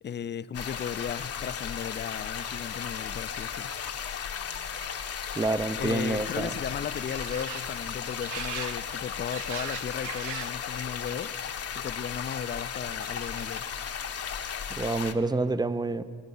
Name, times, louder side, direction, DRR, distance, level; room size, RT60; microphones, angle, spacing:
voice 1, 0.0-3.7 5.8-11.3 11.7-13.7, left 8 dB, 35° left, 15 dB, 0.5 m, -36 dB
sound 1, 0.5-15.1, left 8 dB, 55° left, 1.0 m, -35 dB
sound 2, 3.5-10.7 11.0-11.6 12.5-13.8 14.2-14.8, right 9 dB, 90° right, 0.9 m, -44 dB
voice 2, 5.3-6.5 14.7-16.0, right 2 dB, 15° right, 14 dB, 0.6 m, -28 dB
27.0 x 9.7 x 5.5 m, 2.4 s
cardioid pair, 90°, 30 cm